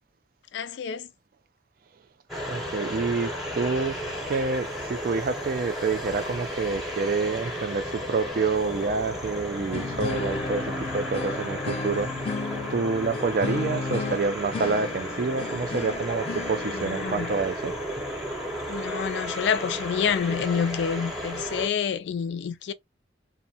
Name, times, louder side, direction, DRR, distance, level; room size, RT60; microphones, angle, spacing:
voice 1, 0.5-1.1 16.7-17.3 18.7-22.7, left 7 dB, 75° left, 0.4 m, -28 dB
sound 1, 2.3-21.7, equal, ahead, 0.7 m, -34 dB
voice 2, 2.5-4.0 4.3-12.5 12.7-17.7, right 4 dB, 50° right, 0.3 m, -28 dB
sound 2, 9.7-18.7, left 3 dB, 30° left, 0.6 m, -34 dB
2.6 x 2.1 x 2.7 m
head